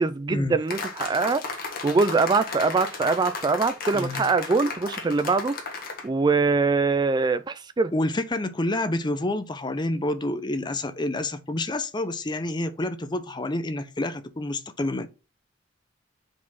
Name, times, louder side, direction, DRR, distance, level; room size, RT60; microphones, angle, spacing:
voice 1, 0.0-1.4 1.8-5.5 6.0-7.9, right 4 dB, 20° right, 0.3 m, -23 dB
sound 1, 0.7-6.1, left 4 dB, 50° left, 1.5 m, -34 dB
voice 2, 3.9-4.3 7.9-15.1, left 1 dB, 25° left, 0.6 m, -28 dB
5.0 x 4.1 x 5.4 m
head